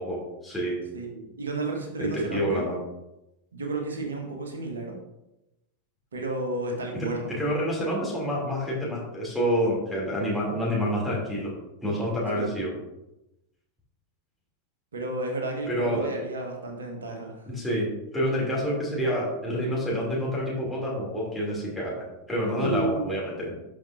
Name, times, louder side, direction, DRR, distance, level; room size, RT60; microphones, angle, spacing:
voice 1, 0.0-0.8 2.0-2.8 6.9-11.5 11.8-12.7 15.7-16.1 17.5-17.9 18.1-23.5, equal, 5° left, -6 dB, 2.9 m, -28 dB
voice 2, 0.9-2.6 3.5-5.0 6.1-7.3 12.3-12.5 14.9-17.5 22.6-23.1, right 2 dB, 70° right, 2 dB, 1.5 m, -32 dB
12.5 x 5.4 x 2.7 m, 0.93 s
figure-of-eight pair, 90°, 0 cm